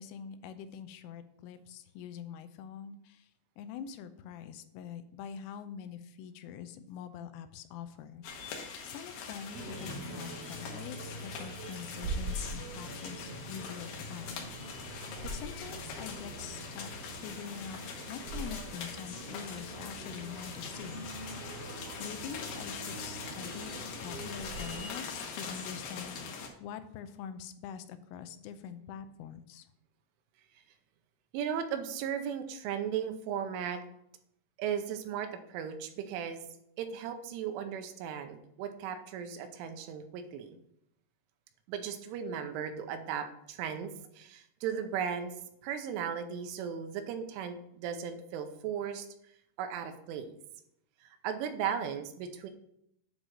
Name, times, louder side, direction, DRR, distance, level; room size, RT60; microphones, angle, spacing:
voice 1, 0.0-3.3 3.6-17.8 18.1-21.1 22.0-23.7 24.0-29.7, left 8 dB, 85° left, 10 dB, 3.1 m, -45 dB
sound 1, 8.2-26.5, left 5 dB, 70° left, 2.5 m, -43 dB
sound 2, 9.5-24.9, right 1 dB, 65° right, 2.0 m, -43 dB
voice 2, 31.3-33.8 34.6-36.4 36.8-40.6 41.7-45.3 45.6-49.1 49.6-50.3 51.0-52.5, right 8 dB, 85° right, 7 dB, 3.2 m, -36 dB
9.5 x 3.9 x 6.0 m, 0.76 s
omnidirectional pair, 5.7 m